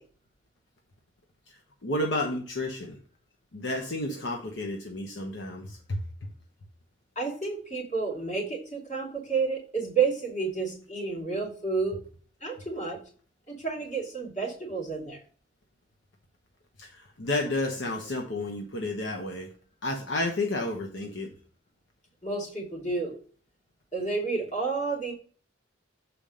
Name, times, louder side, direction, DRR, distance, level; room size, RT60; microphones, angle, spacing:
voice 1, 1.5-3.0 3.5-6.0 16.8-19.5 19.8-21.3, left 2 dB, 70° left, 2 dB, 1.0 m, -31 dB
voice 2, 7.2-12.0 12.4-13.0 13.5-15.2 22.2-23.2 23.9-25.1, right 4 dB, 35° left, -2 dB, 2.7 m, -30 dB
7.0 x 4.4 x 5.0 m, 0.43 s
head